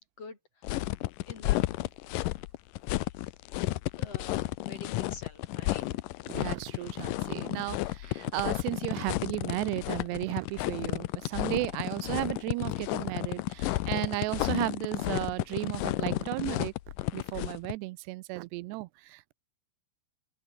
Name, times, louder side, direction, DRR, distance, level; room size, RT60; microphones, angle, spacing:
voice 1, 0.2-0.7 1.3-1.7 2.9-3.3 3.9-6.0, left 4 dB, 35° left, 4.9 m, -47 dB
sound 1, 0.6-17.7, left 17 dB, 85° left, 1.9 m, -32 dB
voice 2, 6.3-16.7 17.1-19.3, right 20 dB, 85° right, 2.8 m, -34 dB
open air
omnidirectional pair, 4.8 m